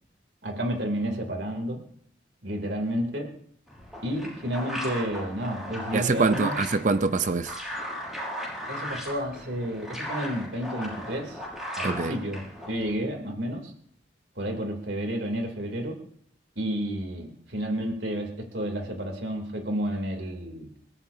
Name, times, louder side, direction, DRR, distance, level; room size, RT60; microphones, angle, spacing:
voice 1, 0.4-1.8 2.4-3.3 4.0-6.6 8.7-11.4 11.8-13.7 14.4-16.0 16.6-20.7, equal, 85° right, 3.0 m, -31 dB
sound 1, 3.7-12.9, equal, 5° right, 6.5 m, -37 dB
voice 2, 5.9-7.6 11.8-12.2, right 3 dB, 45° right, 0.5 m, -25 dB
28.0 x 14.0 x 2.8 m
head